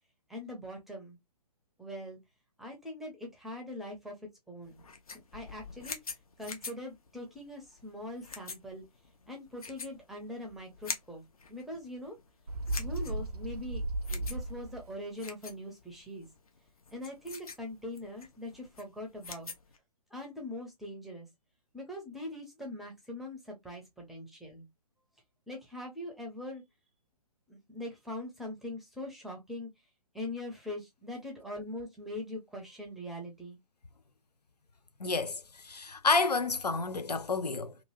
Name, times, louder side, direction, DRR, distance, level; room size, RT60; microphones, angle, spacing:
voice 1, 0.3-1.2 1.8-2.2 2.6-4.8 5.3-6.0 6.4-8.8 9.3-11.2 11.5-12.2 12.7-16.3 16.9-19.6 20.1-21.3 21.7-24.6 25.5-26.6 27.5-29.7 30.1-33.6, left 1 dB, ahead, 0.5 m, -42 dB
sound 1, 4.6-19.8, left 5 dB, 65° left, 0.8 m, -46 dB
Bird, 12.5-14.9, right 2 dB, 75° right, 0.6 m, -35 dB
voice 2, 35.0-37.8, left 4 dB, 90° left, 0.5 m, -30 dB
2.9 x 2.5 x 2.8 m
figure-of-eight pair, 130°, 20 cm